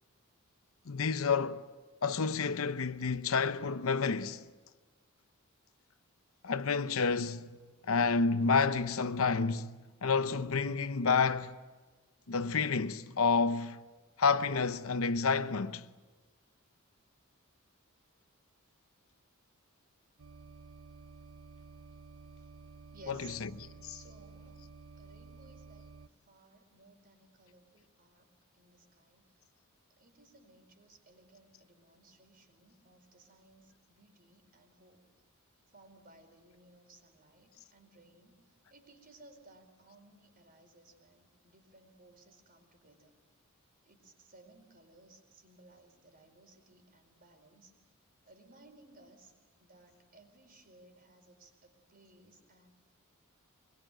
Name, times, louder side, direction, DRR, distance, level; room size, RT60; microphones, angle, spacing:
voice 1, 0.9-1.6 2.0-4.4 6.4-7.6 7.8-11.6 12.3-13.8 14.2-15.9 23.1-24.0, left 5 dB, 70° left, 0.8 m, -30 dB
sound 1, 20.2-26.1, right 4 dB, 70° right, 0.7 m, -53 dB
voice 2, 22.9-23.4 23.9-24.6 25.0-25.9 26.3-28.3 28.5-29.5 30.0-35.0 35.7-38.4 38.7-43.1 43.9-47.7 48.3-49.3 49.6-52.7, right 2 dB, 45° right, 4.6 m, -60 dB
25.0 x 21.5 x 9.1 m
head